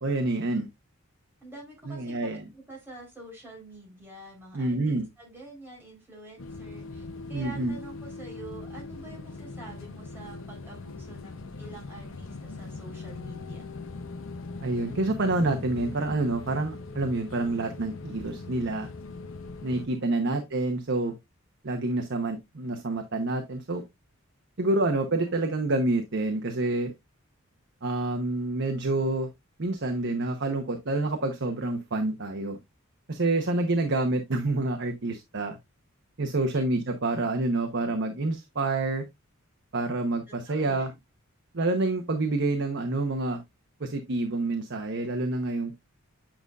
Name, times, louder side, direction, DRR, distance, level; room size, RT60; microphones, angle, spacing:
voice 1, 0.0-0.7 1.9-2.4 4.5-5.1 7.3-7.7 14.6-18.9 19.6-21.2 21.6-23.8 24.6-26.9 27.8-29.3 29.6-32.6 33.1-35.6 36.2-39.0 39.7-40.9 41.5-43.4 43.8-45.8, right 2 dB, 55° right, 0.9 m, -28 dB
voice 2, 1.4-13.7 19.9-20.5 25.2-25.6 36.5-36.6 40.3-41.0, right 2 dB, 10° right, 3.8 m, -47 dB
sound 1, 6.4-19.9, left 3 dB, 65° left, 0.7 m, -41 dB
8.8 x 5.3 x 2.4 m
head